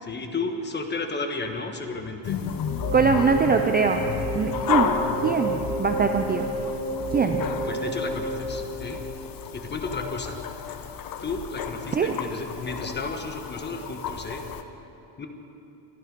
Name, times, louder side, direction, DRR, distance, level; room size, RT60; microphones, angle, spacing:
voice 1, 0.0-2.4 7.6-9.0 9.5-10.4 11.2-14.4 15.2-15.3, left 3 dB, 25° left, 5 dB, 1.2 m, -33 dB
sound 1, 2.2-14.6, left 7 dB, 45° left, 0.9 m, -32 dB
sound 2, 2.5-9.7, right 1 dB, 55° right, 2.6 m, -31 dB
voice 2, 2.9-4.9 5.2-6.5 7.1-7.4 11.9-12.2, right 5 dB, 20° right, 5 dB, 0.5 m, -23 dB
25.5 x 10.0 x 5.2 m, 2.9 s
cardioid pair, 155°, 46 cm